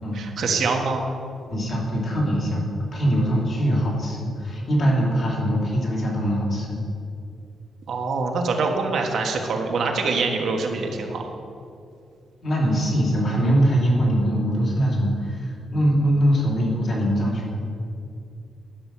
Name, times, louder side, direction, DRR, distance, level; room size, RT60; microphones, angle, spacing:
voice 1, 0.1-1.0 7.9-11.2, right 4 dB, 65° right, 2 dB, 1.4 m, -24 dB
voice 2, 1.5-6.7 12.4-17.6, equal, 45° left, -4 dB, 3.1 m, -22 dB
12.0 x 6.0 x 7.6 m, 2.4 s
wide cardioid pair, 155°, 0 cm